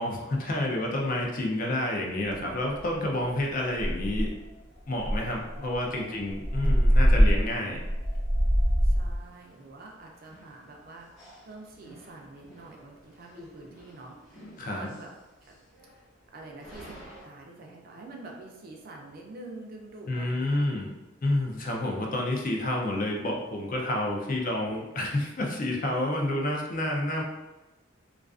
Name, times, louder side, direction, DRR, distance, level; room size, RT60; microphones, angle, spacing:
voice 1, 0.0-4.3 4.9-7.8 14.6-14.9 20.1-20.9 21.2-27.2, left 1 dB, 40° left, 0 dB, 0.4 m, -29 dB
sound 1, 2.4-2.5 2.8-3.1 3.4-3.5 3.8-4.5 5.0-9.2, equal, 80° left, 0.7 m, -23 dB
voice 2, 8.7-11.1 11.5-14.1 14.7-15.1 15.5-15.6 16.3-20.7, right 2 dB, 45° right, 0 dB, 0.4 m, -46 dB
sound 2, 9.1-17.3, equal, 20° left, 1.0 m, -52 dB
2.3 x 2.3 x 2.3 m, 1.1 s
head